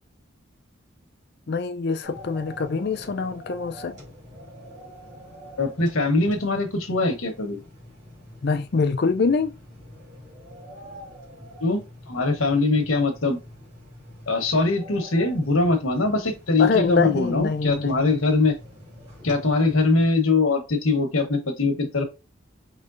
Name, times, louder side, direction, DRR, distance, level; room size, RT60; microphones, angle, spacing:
voice 1, 1.5-4.0 8.4-9.6 16.6-18.2, left 4 dB, 50° left, 0.5 m, -24 dB
sound 1, 2.0-20.1, equal, 35° right, 2.4 m, -45 dB
voice 2, 5.6-7.6 11.6-11.8 12.1-13.4 14.3-18.5 19.2-22.0, left 3 dB, 80° left, 1.2 m, -22 dB
5.1 x 3.2 x 2.6 m
head